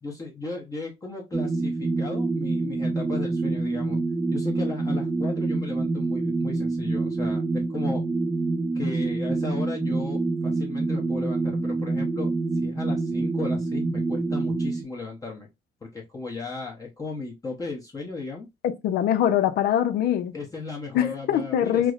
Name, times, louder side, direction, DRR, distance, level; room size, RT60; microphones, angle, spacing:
voice 1, 0.0-4.0 4.3-8.0 8.7-12.3 12.6-15.5 15.8-18.5 20.3-21.9, left 3 dB, 20° left, 0.8 m, -36 dB
sound 1, 1.3-14.8, right 3 dB, 10° right, 0.4 m, -26 dB
voice 2, 18.6-20.3 20.9-21.9, left 10 dB, 70° left, 0.5 m, -23 dB
4.6 x 2.1 x 2.4 m
cardioid pair, 110°, 17 cm